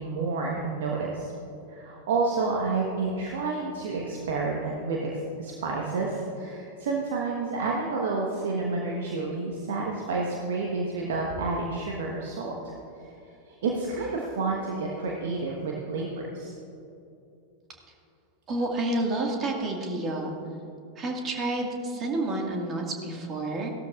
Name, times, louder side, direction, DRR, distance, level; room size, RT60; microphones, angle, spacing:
voice 1, 0.0-1.3 1.7-12.7 13.5-16.5, right 3 dB, 55° right, -1 dB, 1.2 m, -30 dB
voice 2, 18.5-20.3 21.0-23.7, right 2 dB, 25° right, 1 dB, 1.9 m, -29 dB
17.0 x 12.5 x 2.5 m, 2.8 s
figure-of-eight pair, 90°, 0 cm